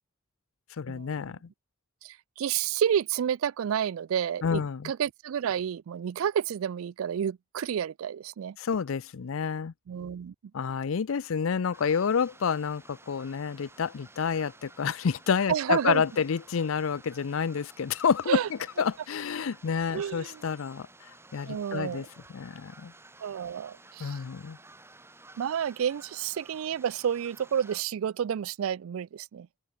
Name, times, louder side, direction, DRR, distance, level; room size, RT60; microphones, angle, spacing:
voice 1, 0.8-1.4 4.4-4.9 8.6-9.7 10.5-20.9 21.3-22.0 22.3-22.9 24.0-24.6, left 6 dB, 75° left, 0.5 m, -29 dB
voice 2, 2.0-8.6 9.9-10.3 15.5-16.0 18.3-18.5 19.9-20.4 21.5-22.1 23.2-24.2 25.4-29.5, right 8 dB, 85° right, 0.4 m, -30 dB
sound 1, 11.7-27.8, right 2 dB, 10° right, 3.7 m, -54 dB
open air
head